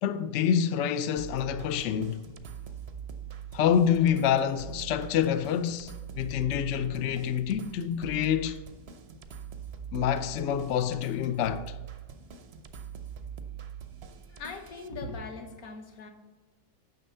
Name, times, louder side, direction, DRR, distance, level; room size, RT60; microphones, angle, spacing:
voice 1, 0.0-2.3 3.5-8.6 9.9-11.8, left 8 dB, 80° left, 0.6 m, -27 dB
sound 1, 1.2-14.9, right 8 dB, 60° right, 0.7 m, -43 dB
voice 2, 14.3-16.1, left 3 dB, 55° left, 1.5 m, -40 dB
9.5 x 6.4 x 5.5 m
omnidirectional pair, 1.9 m